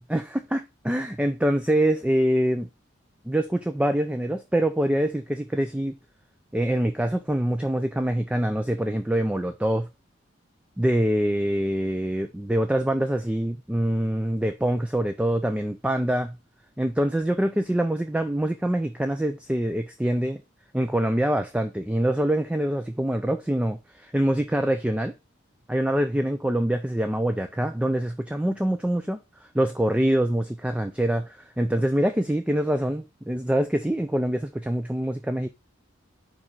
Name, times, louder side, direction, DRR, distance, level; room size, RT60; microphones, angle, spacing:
voice 1, 0.1-2.7 3.3-5.9 6.5-9.9 10.8-16.4 16.8-20.4 20.7-25.1 25.7-29.2 29.5-35.5, right 1 dB, 5° right, 0.3 m, -25 dB
5.2 x 4.3 x 5.3 m
head